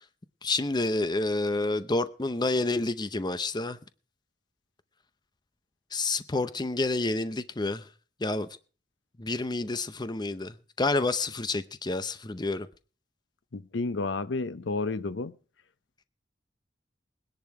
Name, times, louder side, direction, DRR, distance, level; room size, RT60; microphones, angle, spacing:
voice 1, 0.4-3.8 5.9-7.9 8.2-8.5 9.2-12.7, left 2 dB, 25° left, 0.7 m, -29 dB
voice 2, 13.5-15.3, left 3 dB, 85° left, 0.7 m, -31 dB
19.5 x 10.5 x 4.8 m
head